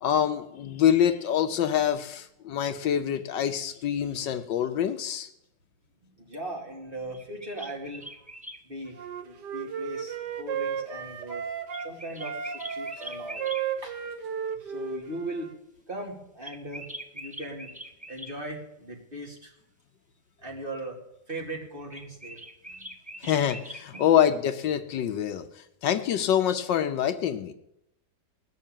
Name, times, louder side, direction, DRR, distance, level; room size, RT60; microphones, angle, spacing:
voice 1, 0.0-5.3 23.2-27.5, left 9 dB, 75° left, 9 dB, 1.4 m, -25 dB
voice 2, 6.0-8.3 8.6-11.4 11.8-13.5 13.8-14.0 14.5-15.5 15.9-17.7 18.1-19.6 20.4-21.0 21.3-22.5 23.2-23.3 23.9-24.3 25.9-26.0, right 1 dB, 25° right, -1 dB, 2.7 m, -39 dB
sound 1, 7.1-8.6 11.7-13.6 16.4-18.4 21.9-24.1, right 1 dB, 10° right, 0.5 m, -42 dB
Wind instrument woodwind instrument, 9.0-11.9 12.2-15.6, right 7 dB, 65° right, 1.6 m, -34 dB
19.0 x 6.5 x 8.9 m, 0.85 s
omnidirectional pair, 2.1 m